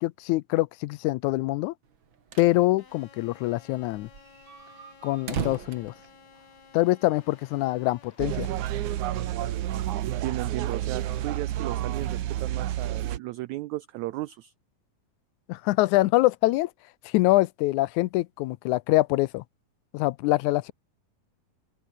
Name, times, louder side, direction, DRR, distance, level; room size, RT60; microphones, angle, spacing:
voice 1, 0.0-1.7 2.4-4.1 5.0-5.9 6.7-8.5 15.5-16.7 17.0-19.4 19.9-20.7, left 19 dB, 80° left, 1.7 m, -24 dB
sound 1, 1.9-2.6 2.9-3.0 3.2-3.3 3.8-6.8, right 6 dB, 40° right, 2.4 m, -37 dB
sound 2, 2.8-12.9, left 6 dB, 50° left, 4.5 m, -56 dB
sound 3, 8.2-13.2, right 13 dB, 65° right, 2.4 m, -30 dB
voice 2, 10.0-14.5, right 17 dB, 90° right, 1.6 m, -35 dB
open air
omnidirectional pair, 4.0 m